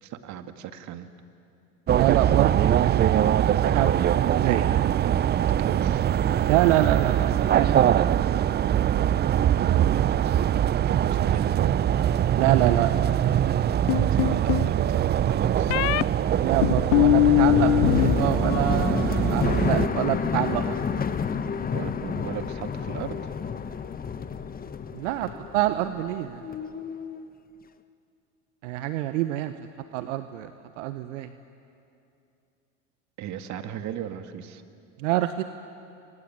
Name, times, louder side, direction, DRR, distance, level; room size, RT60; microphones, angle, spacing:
voice 1, 0.0-1.1 5.4-6.0 9.5-11.8 14.0-16.0 21.7-23.3 33.2-34.6, right 10 dB, 45° right, 8 dB, 2.1 m, -37 dB
sound 1, 1.9-19.9, right 10 dB, 25° right, 0.6 m, -23 dB
voice 2, 1.9-3.1 3.6-4.7 6.5-8.0 12.4-12.9 16.4-20.8 24.9-26.4 28.6-29.5 29.9-30.5 30.8-31.3 35.0-35.4, right 14 dB, 70° right, 10 dB, 1.1 m, -26 dB
sound 2, 13.9-14.7 15.7-16.0 16.6-18.2 18.4-19.0, left 18 dB, 65° left, 0.6 m, -21 dB
sound 3, 16.3-26.2 26.4-27.3, left 6 dB, 20° left, 1.2 m, -30 dB
28.0 x 24.0 x 8.9 m, 2.6 s
hypercardioid pair, 90°, 39 cm